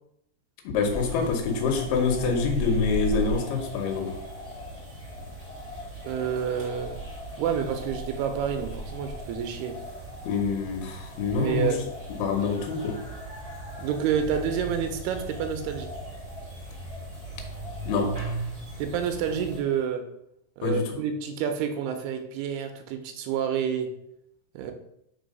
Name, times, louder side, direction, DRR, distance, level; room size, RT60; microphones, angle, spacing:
voice 1, 0.7-4.1 10.3-11.7 12.2-13.0 17.9-18.1 20.6-20.8, left 4 dB, 75° left, 3 dB, 2.9 m, -26 dB
sound 1, 0.8-19.6, right 1 dB, 15° right, 2.1 m, -37 dB
voice 2, 6.0-7.0 7.4-9.8 11.3-11.9 13.8-15.9 18.8-20.1 20.6-23.9 24.5-24.7, right 8 dB, 80° right, 7 dB, 2.6 m, -29 dB
5.3 x 4.7 x 5.2 m, 0.78 s
omnidirectional pair, 4.7 m